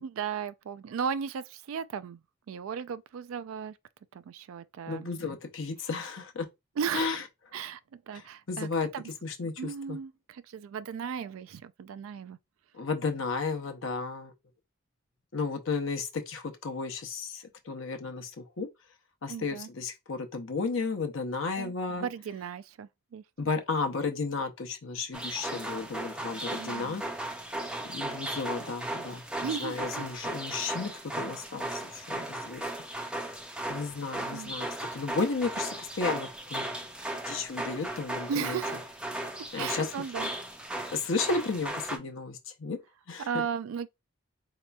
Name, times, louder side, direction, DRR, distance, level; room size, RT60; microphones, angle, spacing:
voice 1, 0.0-2.2 2.5-3.8 4.1-5.1 5.8-5.9 6.8-7.2 7.5-9.1 9.6-12.4 19.3-19.7 21.5-23.2 26.5-27.0 29.4-30.1 34.3-34.6 38.3-38.8 39.6-40.3 43.2-43.9, right 7 dB, 80° right, 0.3 m, -36 dB
voice 2, 4.9-6.5 6.9-7.2 8.5-8.9 9.2-10.0 12.7-14.3 15.3-18.7 19.2-22.1 23.4-27.0 27.9-32.6 33.7-36.7 37.3-38.6 39.5-39.9 40.9-42.8 43.1-43.3, left 4 dB, 70° left, 0.7 m, -33 dB
sound 1, 25.1-42.0, right 1 dB, 5° right, 0.4 m, -36 dB
4.1 x 2.9 x 2.2 m
head